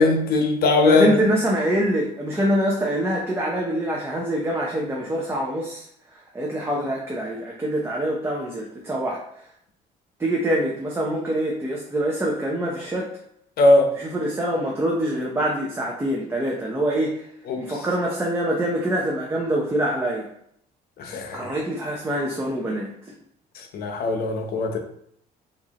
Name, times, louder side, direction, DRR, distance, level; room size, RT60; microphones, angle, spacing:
voice 1, 0.0-1.2 13.6-13.9 17.5-17.6 21.0-21.5 23.5-24.8, left 2 dB, 65° left, 3 dB, 0.8 m, -20 dB
voice 2, 0.8-5.8 6.3-9.2 10.2-13.1 14.0-17.2 17.6-20.3 21.3-22.9, right 1 dB, 15° right, -3 dB, 0.7 m, -25 dB
4.7 x 2.6 x 2.9 m, 0.69 s
cardioid pair, 110°, 17 cm